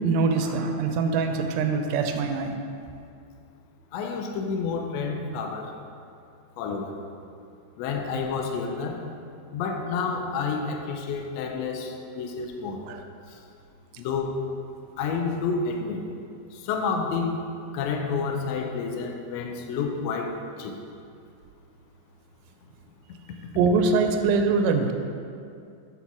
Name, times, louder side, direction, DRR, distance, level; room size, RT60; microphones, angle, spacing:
voice 1, 0.0-2.6 12.9-13.0 23.6-24.9, right 4 dB, 90° right, 5 dB, 2.2 m, -23 dB
voice 2, 3.9-5.7 6.6-7.0 7.8-9.0 9.5-12.8 14.0-14.4 15.0-16.0 16.5-17.4 17.7-20.8, left 5 dB, 80° left, 3 dB, 1.5 m, -29 dB
7.0 x 4.2 x 5.9 m, 2.4 s
omnidirectional pair, 3.7 m